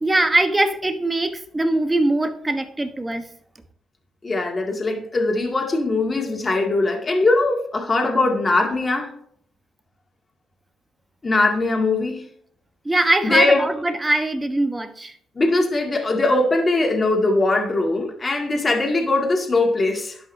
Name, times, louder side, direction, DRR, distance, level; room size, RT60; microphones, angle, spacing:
voice 1, 0.0-3.3 12.8-15.1, right 2 dB, 15° right, 1.1 m, -21 dB
voice 2, 4.2-9.1 11.2-12.2 13.2-13.7 15.4-20.2, left 2 dB, 30° left, 2.0 m, -21 dB
12.0 x 5.5 x 2.7 m
cardioid pair, 90°, 0 cm